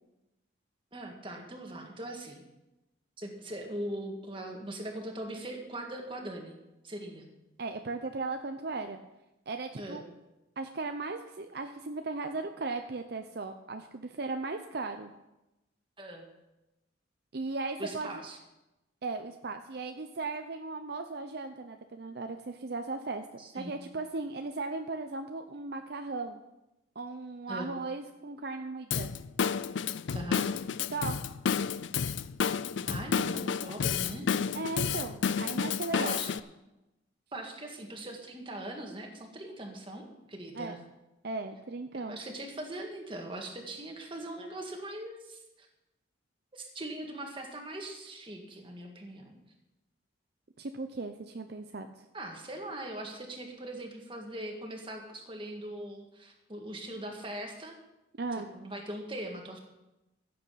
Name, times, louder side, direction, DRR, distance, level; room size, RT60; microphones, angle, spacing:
voice 1, 0.9-2.4 3.2-6.6 6.8-7.3 9.8-10.1 16.0-16.3 17.8-18.4 23.4-23.7 27.5-27.7 30.1-30.5 32.9-34.3 35.9-36.3 37.3-40.8 42.0-45.7 46.5-49.4 52.1-57.8 58.5-59.6, right 1 dB, 25° right, 2 dB, 1.9 m, -41 dB
voice 2, 7.6-9.0 9.5-10.0 10.6-15.1 17.3-18.2 19.0-23.2 23.5-26.4 27.0-29.1 30.9-31.2 34.5-36.2 40.5-40.8 41.2-42.2 50.6-52.0 58.2-58.5, right 3 dB, 55° right, 6 dB, 0.7 m, -37 dB
Drum kit / Drum, 28.9-36.4, left 6 dB, 75° left, 0.5 m, -31 dB
15.5 x 7.7 x 5.8 m, 0.97 s
head